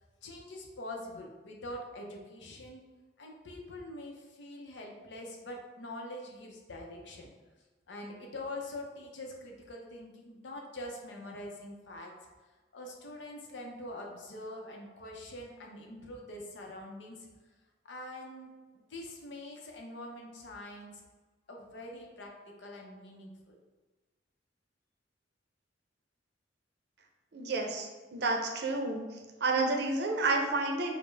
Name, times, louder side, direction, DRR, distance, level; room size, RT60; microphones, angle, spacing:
voice 1, 0.2-2.8 3.2-7.3 7.9-12.1 12.7-17.3 17.8-21.0 21.5-23.6, left 1 dB, 75° left, 0 dB, 0.7 m, -44 dB
voice 2, 27.3-29.0 29.4-30.9, right 3 dB, 65° right, 2 dB, 0.6 m, -30 dB
5.1 x 2.1 x 3.3 m, 1.3 s
head